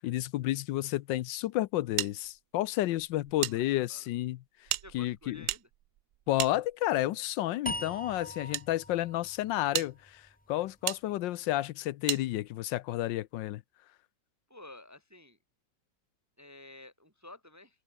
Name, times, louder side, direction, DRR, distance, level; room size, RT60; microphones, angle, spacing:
voice 1, 0.0-4.4 4.9-5.4 6.3-13.6, left 15 dB, 85° left, 1.3 m, -31 dB
sound 1, 2.0-3.6 3.8-3.9 4.6-7.1 7.9-8.7 9.2-9.3 9.7-9.9 10.9-11.0 12.1-12.2, right 14 dB, 85° right, 0.7 m, -35 dB
voice 2, 3.5-4.1 4.8-5.7 11.0-11.2 14.5-15.4 16.4-17.8, left 2 dB, 10° right, 1.0 m, -52 dB
sound 2, 7.7-10.8, left 1 dB, 5° left, 1.5 m, -42 dB
omnidirectional pair, 2.0 m